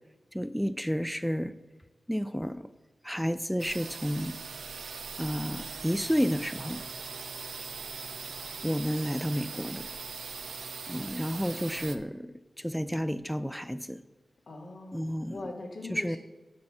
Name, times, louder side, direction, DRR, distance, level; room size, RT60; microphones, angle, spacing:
voice 1, 0.3-1.5 2.1-2.7 3.0-4.4 5.2-6.9 8.6-9.9 10.9-14.0 14.9-15.5 15.9-16.2, equal, ahead, 12 dB, 0.3 m, -31 dB
sound 1, 3.6-12.0, right 5 dB, 90° right, 0.6 m, -40 dB
voice 2, 14.5-16.2, left 2 dB, 65° left, 2 dB, 1.4 m, -41 dB
8.1 x 5.3 x 5.7 m, 1.2 s
cardioid pair, 70°, 0 cm